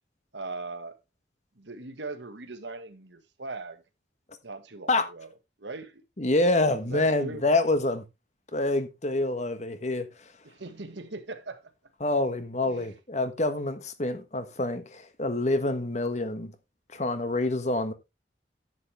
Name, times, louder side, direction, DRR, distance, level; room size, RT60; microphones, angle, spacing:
voice 1, 0.3-1.0 1.6-3.8 4.4-5.3 5.6-6.0 6.8-7.4 10.4-11.7 12.7-12.9, right 3 dB, 80° right, 1.5 m, -39 dB
voice 2, 6.2-8.0 8.5-10.3 12.0-16.5 16.9-17.9, left 2 dB, 40° left, 1.3 m, -27 dB
10.5 x 8.3 x 3.3 m
head